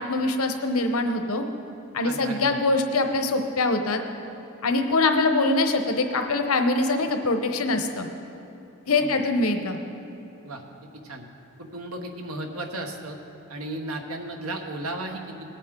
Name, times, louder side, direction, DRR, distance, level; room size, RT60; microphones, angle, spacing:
voice 1, 0.0-1.5 1.9-4.0 4.6-8.1 8.9-9.8, left 2 dB, 75° left, 6 dB, 1.0 m, -23 dB
voice 2, 2.0-2.8 9.0-9.2 10.4-10.6 11.0-11.2 11.6-13.2 13.5-15.5, right 1 dB, 75° right, 3 dB, 1.3 m, -35 dB
19.5 x 8.4 x 3.8 m, 3.0 s
head